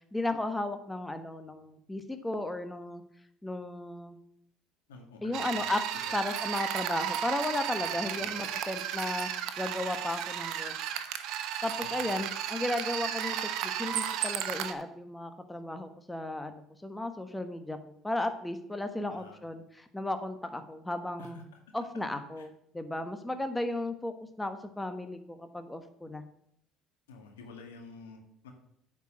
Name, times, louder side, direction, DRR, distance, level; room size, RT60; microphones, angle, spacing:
voice 1, 0.1-3.0 3.4-4.2 5.2-5.8 6.1-9.3 9.6-10.7 11.6-21.4 21.7-26.2, left 1 dB, 10° left, 8 dB, 1.2 m, -35 dB
voice 2, 4.9-6.2 8.0-8.5 11.8-12.1 19.1-19.4 21.2-21.6 22.4-22.5 27.1-28.5, left 4 dB, 90° left, 3 dB, 1.9 m, -50 dB
sound 1, 5.3-14.7, right 10 dB, 70° right, 0.9 m, -34 dB
9.3 x 4.8 x 7.3 m, 0.72 s
hypercardioid pair, 70°, 0 cm